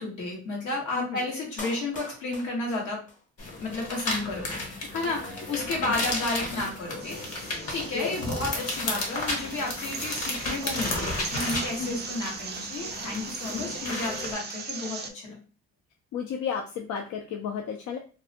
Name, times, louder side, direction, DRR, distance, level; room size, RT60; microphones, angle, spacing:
voice 1, 0.0-3.0 3.6-4.6 4.9-15.4, left 2 dB, 85° left, -2 dB, 1.2 m, -32 dB
Clapping, 1.6-3.6 3.8-3.9, left 2 dB, 25° left, 0.6 m, -43 dB
sound 1, 3.4-14.3, left 2 dB, 50° left, 1.0 m, -33 dB
sound 2, 7.0-15.1, right 5 dB, 35° right, 0.4 m, -39 dB
voice 2, 16.1-18.0, left 7 dB, 70° left, 3 dB, 0.4 m, -33 dB
2.6 x 2.1 x 2.7 m, 0.37 s
cardioid pair, 90°, 30 cm